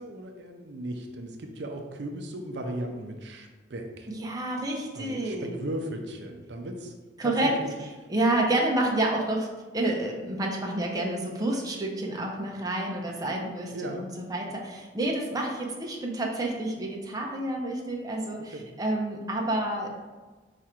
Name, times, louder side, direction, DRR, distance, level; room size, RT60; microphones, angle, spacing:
voice 1, 0.0-4.1 4.9-6.9 7.2-7.7 13.7-14.0 18.5-18.7, right 1 dB, 70° right, 3 dB, 0.5 m, -36 dB
voice 2, 4.1-5.6 7.2-7.5 8.1-9.5 9.7-13.9 14.3-19.9, right 1 dB, 20° right, -1 dB, 0.6 m, -29 dB
4.7 x 2.5 x 4.3 m, 1.3 s
head